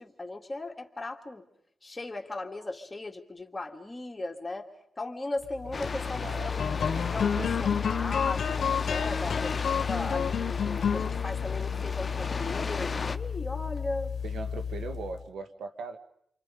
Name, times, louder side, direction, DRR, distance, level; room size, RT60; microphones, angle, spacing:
voice 1, 0.0-1.4 1.8-4.7 5.0-6.6 6.9-9.6 9.8-14.1, left 2 dB, 25° left, 3 dB, 2.3 m, -37 dB
sound 1, 5.6-15.2, left 7 dB, 75° left, 0.9 m, -30 dB
sound 2, 5.7-13.2, left 4 dB, 45° left, 0.9 m, -36 dB
voice 2, 6.2-7.1 7.4-7.5 14.2-16.0, right 4 dB, 85° right, 7 dB, 1.5 m, -39 dB
30.0 x 24.0 x 5.3 m, 0.69 s
cardioid pair, 70°, 0 cm